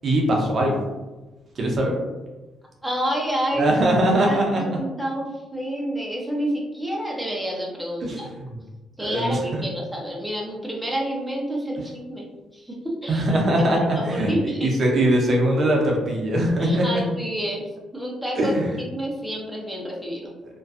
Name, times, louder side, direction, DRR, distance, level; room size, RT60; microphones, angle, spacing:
voice 1, 0.0-0.8 1.6-2.0 3.6-4.7 8.0-8.6 9.0-9.6 13.1-16.9 18.4-18.7, right 1 dB, 50° right, 0 dB, 0.5 m, -21 dB
voice 2, 2.8-3.7 4.3-5.3 5.5-8.3 9.0-12.3 12.5-14.7 16.6-17.7 17.9-18.5 18.8-20.3, equal, ahead, -3 dB, 0.6 m, -29 dB
2.5 x 2.2 x 2.4 m, 1.1 s
cardioid pair, 90°, 0 cm